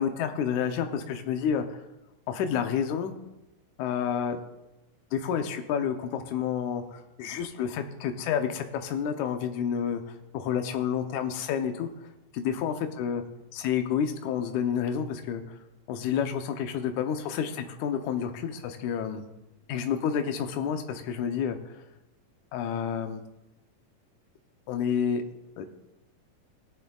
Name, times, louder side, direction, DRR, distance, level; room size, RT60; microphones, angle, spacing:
voice 1, 0.0-1.7 2.3-3.1 3.8-4.4 5.1-10.0 10.3-11.9 12.3-13.2 13.5-15.4 15.9-19.2 19.7-21.6 22.5-23.2 24.7-25.2 25.6-25.7, left 8 dB, 75° left, 6 dB, 2.2 m, -29 dB
17.0 x 9.6 x 2.3 m, 0.97 s
omnidirectional pair, 3.6 m